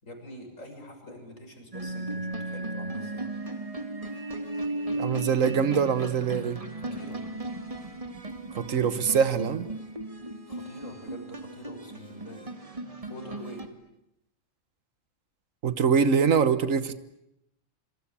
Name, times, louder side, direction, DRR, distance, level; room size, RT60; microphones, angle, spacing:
voice 1, 0.0-3.3 6.7-7.2 10.5-12.4 13.1-13.7, left 1 dB, 70° left, 4 dB, 6.9 m, -45 dB
sound 1, 1.7-13.7, right 2 dB, 25° right, 2.1 m, -36 dB
voice 2, 4.9-6.6 8.6-9.7 15.6-16.9, right 6 dB, 75° right, 13 dB, 1.6 m, -24 dB
26.5 x 25.5 x 8.6 m, 0.84 s
omnidirectional pair, 1.4 m